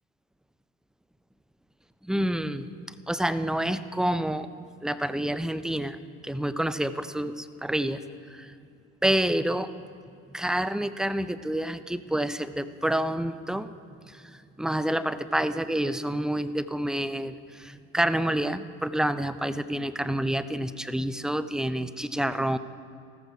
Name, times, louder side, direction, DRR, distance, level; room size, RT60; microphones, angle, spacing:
voice 1, 2.0-4.5 4.8-6.0 6.2-8.0 8.3-8.5 9.0-9.7 10.3-13.7 14.1-22.6, right 1 dB, ahead, 13 dB, 0.5 m, -28 dB
14.5 x 14.0 x 4.8 m, 2.4 s
figure-of-eight pair, 55°, 40 cm